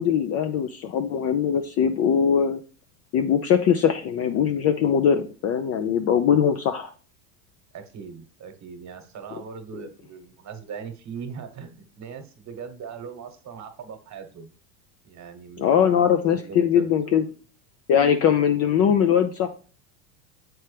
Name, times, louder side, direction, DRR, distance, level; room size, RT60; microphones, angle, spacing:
voice 1, 0.0-2.6 3.1-6.9 15.6-17.2 17.9-19.5, left 8 dB, 35° left, 7 dB, 0.4 m, -21 dB
voice 2, 7.7-14.5 15.0-15.9 16.4-17.4, right 6 dB, 35° right, 7 dB, 1.2 m, -40 dB
7.3 x 4.5 x 3.3 m, 0.40 s
hypercardioid pair, 100°, 50 cm